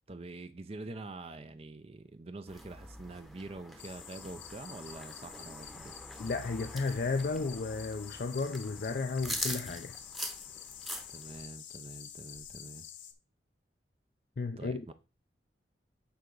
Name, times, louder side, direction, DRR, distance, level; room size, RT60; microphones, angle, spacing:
voice 1, 0.1-6.0 11.1-12.9 14.6-14.9, right 2 dB, 30° right, 0.5 m, -45 dB
sound 1, 2.5-11.4, equal, ahead, 0.8 m, -43 dB
sound 2, 3.8-13.1, left 10 dB, 80° left, 1.1 m, -48 dB
voice 2, 6.2-10.0 14.4-14.9, left 3 dB, 50° left, 0.4 m, -33 dB
9.4 x 4.7 x 3.9 m
head